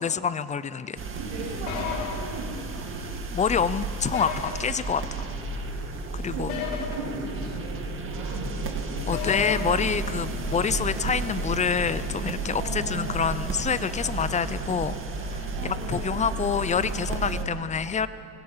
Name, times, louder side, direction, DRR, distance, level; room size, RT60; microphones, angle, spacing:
voice 1, 0.0-1.0 3.3-5.3 6.1-6.6 9.1-18.1, left 6 dB, 15° left, 15 dB, 0.4 m, -27 dB
sound 1, 1.0-17.4, right 3 dB, 30° right, 2.2 m, -32 dB
voice 2, 1.1-3.2 6.3-8.8 9.2-9.8 12.5-13.2 13.7-14.0 15.5-16.2 16.7-17.8, right 2 dB, 75° right, -6 dB, 6.9 m, -38 dB
sound 2, 1.7-2.1 4.1-4.5 6.5-6.9 9.1-9.6, left 10 dB, 85° left, 5.1 m, -31 dB
24.0 x 20.5 x 5.6 m, 2.6 s
supercardioid pair, 130°, 43 cm